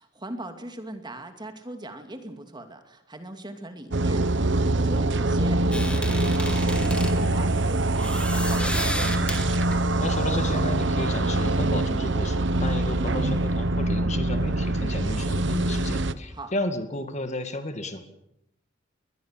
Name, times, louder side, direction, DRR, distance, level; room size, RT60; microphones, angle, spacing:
voice 1, 0.0-9.2 16.3-16.5, right 1 dB, 25° right, 7 dB, 2.4 m, -40 dB
sound 1, 3.9-16.1, right 2 dB, 65° right, 1.1 m, -24 dB
sound 2, 5.7-10.7, left 1 dB, 5° left, 2.7 m, -33 dB
voice 2, 9.8-18.0, left 2 dB, 35° left, 8 dB, 2.1 m, -33 dB
21.5 x 21.0 x 7.5 m, 0.81 s
head